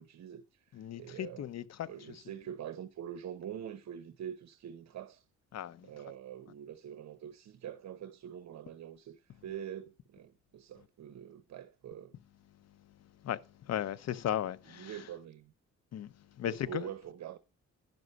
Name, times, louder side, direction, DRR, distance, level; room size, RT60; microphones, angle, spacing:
voice 1, 0.0-1.5 1.8-5.2 5.8-12.2 14.7-15.5 16.4-17.4, right 9 dB, 65° right, 0.9 m, -45 dB
voice 2, 0.7-1.9 5.5-5.9 13.2-14.9 15.9-16.9, left 11 dB, 60° left, 0.8 m, -36 dB
10.5 x 6.1 x 5.3 m
cardioid pair, 90°, 30 cm